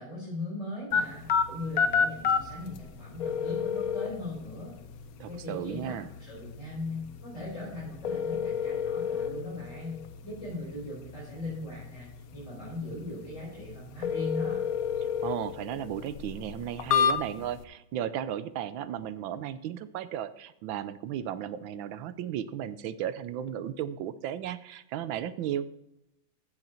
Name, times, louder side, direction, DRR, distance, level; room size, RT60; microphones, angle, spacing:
voice 1, 0.0-4.7 5.3-14.6, left 2 dB, 35° left, -8 dB, 4.6 m, -39 dB
sound 1, 0.9-17.6, left 6 dB, 70° left, 0.8 m, -32 dB
voice 2, 5.2-6.1 15.0-25.7, right 10 dB, 75° right, 14 dB, 1.3 m, -35 dB
15.0 x 6.7 x 4.3 m, 0.87 s
omnidirectional pair, 2.4 m